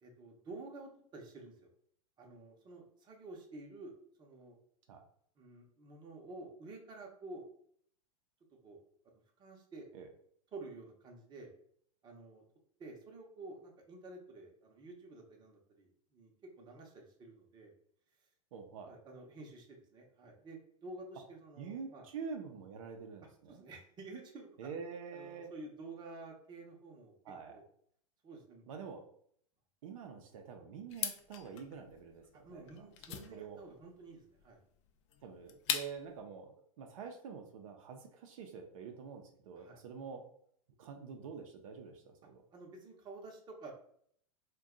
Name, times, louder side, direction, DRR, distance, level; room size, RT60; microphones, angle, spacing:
voice 1, 0.0-1.7 2.2-3.9 4.2-4.6 5.4-7.4 8.6-8.8 9.4-9.9 10.5-11.5 12.0-12.4 12.8-17.7 18.9-22.1 23.5-24.5 25.1-27.2 27.5-27.6 28.2-28.6 32.3-34.6 39.6-39.8 42.5-43.7, right 2 dB, 25° right, 1 dB, 0.7 m, -50 dB
voice 2, 18.5-18.9 21.6-23.6 24.6-25.5 27.2-27.6 28.7-29.0 29.8-33.6 35.2-40.2 40.8-42.4, right 6 dB, 70° right, 3 dB, 0.5 m, -47 dB
sound 1, 30.9-36.2, left 9 dB, 55° left, 0.4 m, -41 dB
2.6 x 2.2 x 3.6 m, 0.64 s
hypercardioid pair, 120°, 18 cm